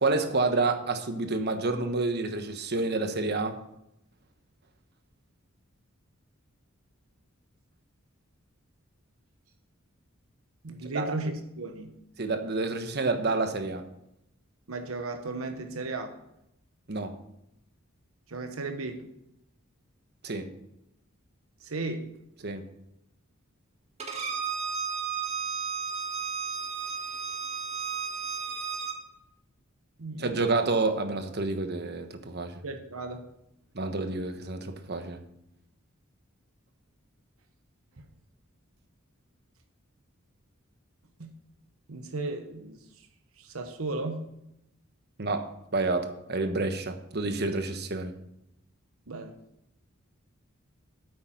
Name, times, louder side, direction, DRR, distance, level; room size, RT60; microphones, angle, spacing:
voice 1, 0.0-3.6 10.9-11.1 12.2-13.9 16.9-17.1 20.2-20.5 22.4-22.7 30.2-32.6 33.7-35.2 45.2-48.1, right 3 dB, 50° right, 7 dB, 1.2 m, -29 dB
voice 2, 10.6-11.9 14.7-16.1 18.3-19.1 21.6-22.2 30.0-30.6 32.6-33.2 41.2-41.3 41.9-43.1 43.4-44.3 49.1-49.3, right 2 dB, 80° right, 6 dB, 1.1 m, -35 dB
Bowed string instrument, 24.0-29.0, right 6 dB, 30° right, 1.6 m, -33 dB
9.3 x 8.4 x 5.9 m, 0.82 s
head